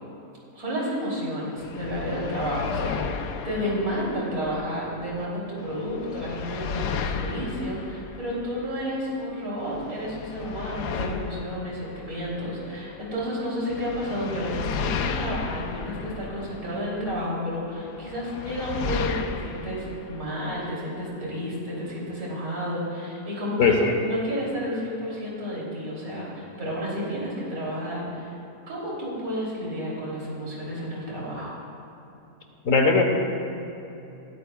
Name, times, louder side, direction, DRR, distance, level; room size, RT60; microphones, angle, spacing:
voice 1, 0.5-28.3 28.7-31.5, equal, 55° right, -6 dB, 3.7 m, -31 dB
sound 1, 1.6-5.2 5.6-9.2 9.6-13.3 13.7-17.3 17.8-20.3, left 5 dB, 80° left, 1.3 m, -34 dB
voice 2, 23.6-23.9 32.6-33.0, left 4 dB, 55° left, 2 dB, 1.5 m, -19 dB
20.5 x 13.5 x 2.4 m, 3.0 s
omnidirectional pair, 1.8 m